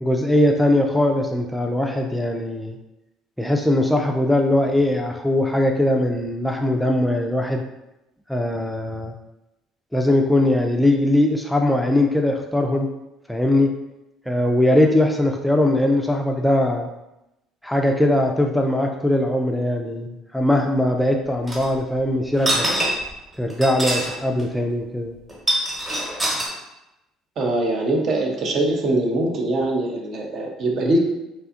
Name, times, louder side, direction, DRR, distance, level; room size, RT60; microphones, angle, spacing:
voice 1, 0.0-2.8 3.4-7.6 8.3-9.1 9.9-12.9 13.3-13.8 14.3-16.9 17.6-22.7 23.4-25.1, left 1 dB, ahead, 2 dB, 0.3 m, -20 dB
sound 1, 21.5-21.7 22.3-23.1 23.5-24.1 24.4-24.5 25.3-26.5, right 1 dB, 20° right, 1.0 m, -24 dB
voice 2, 27.4-31.1, right 2 dB, 50° right, 1 dB, 0.6 m, -22 dB
2.7 x 2.3 x 2.4 m, 0.94 s
hypercardioid pair, 60°, 0 cm